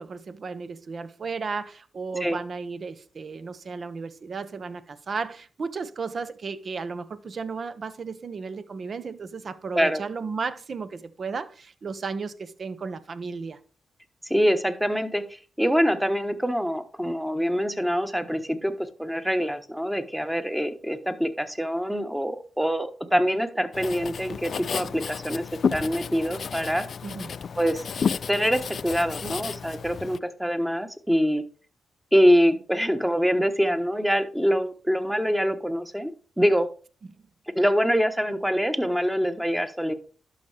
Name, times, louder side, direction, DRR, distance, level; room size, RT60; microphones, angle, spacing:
voice 1, 0.0-13.6 27.0-27.4 37.1-37.2, right 4 dB, 55° right, 0.8 m, -34 dB
voice 2, 14.3-25.5 25.7-26.9 27.6-27.8 28.3-31.4 32.1-36.1 36.4-36.7 37.5-39.9, equal, 5° right, 1.2 m, -24 dB
Writing, 23.7-30.2, left 6 dB, 65° left, 0.3 m, -32 dB
11.5 x 5.6 x 3.4 m
cardioid pair, 55°, 0 cm